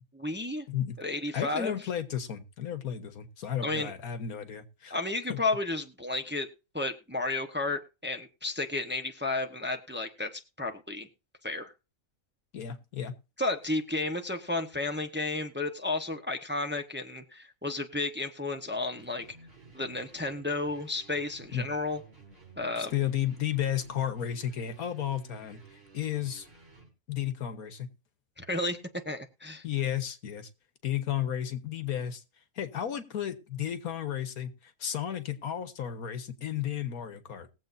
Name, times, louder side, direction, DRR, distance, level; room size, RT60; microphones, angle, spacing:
voice 1, 0.1-0.7 1.0-1.7 3.6-3.9 4.9-6.5 6.7-11.1 11.4-11.7 13.4-19.3 19.7-22.0 22.6-22.9 28.4-28.8 29.1-29.6, left 2 dB, 10° right, 0.9 m, -32 dB
voice 2, 0.7-1.0 1.3-5.0 5.3-5.4 12.5-13.1 21.5-21.7 22.8-25.6 25.9-26.5 27.1-27.9 29.6-30.5 30.8-32.2 32.5-37.5, left 10 dB, 85° left, 1.7 m, -33 dB
sound 1, 19.0-26.9, right 4 dB, 40° right, 5.4 m, -54 dB
20.0 x 7.6 x 2.6 m
omnidirectional pair, 1.5 m